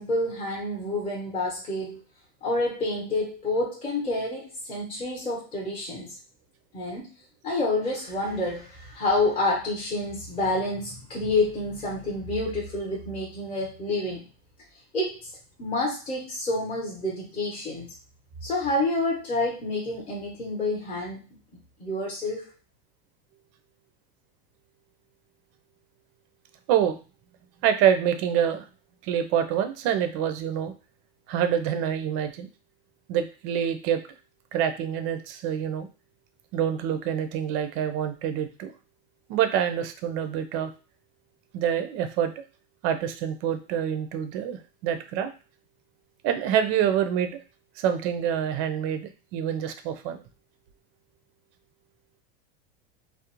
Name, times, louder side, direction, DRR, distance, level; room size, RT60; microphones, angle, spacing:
voice 1, 0.0-2.0 2.4-6.2 6.7-7.1 7.4-14.2 14.9-15.2 15.6-17.9 18.4-21.2 21.8-22.4, left 2 dB, 20° left, -3 dB, 0.8 m, -28 dB
voice 2, 27.6-28.7 29.0-30.7 31.3-32.5 33.1-34.0 34.5-35.9 36.5-38.7 39.3-40.7 41.5-42.3 42.8-45.3 46.2-47.4 47.8-50.2, right 9 dB, 45° right, 9 dB, 0.4 m, -26 dB
2.4 x 2.0 x 2.9 m, 0.33 s
supercardioid pair, 135°, 32 cm